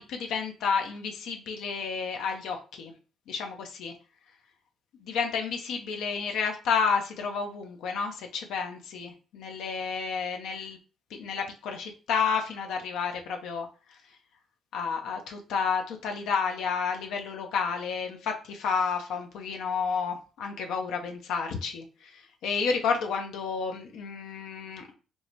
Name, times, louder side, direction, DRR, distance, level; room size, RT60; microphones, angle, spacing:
voice 1, 0.0-2.9 3.3-3.9 5.0-10.8 11.1-13.7 14.7-21.8 22.4-24.9, left 5 dB, 85° left, 3 dB, 0.5 m, -31 dB
4.6 x 2.1 x 2.7 m, 0.35 s
cardioid pair, 90°, 0 cm